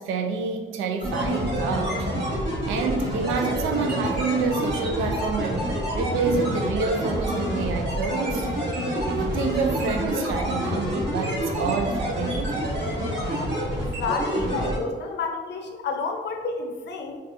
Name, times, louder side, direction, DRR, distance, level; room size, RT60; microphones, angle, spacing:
voice 1, 0.0-2.1 2.7-5.7 5.9-8.5 9.1-12.6, right 5 dB, 85° right, 4 dB, 0.4 m, -28 dB
sound 1, 1.0-14.8, equal, 60° right, 1.4 m, -27 dB
voice 2, 13.7-17.2, left 4 dB, 60° left, 4 dB, 0.5 m, -30 dB
4.0 x 2.4 x 2.5 m, 1.4 s
cardioid pair, 90°, 20 cm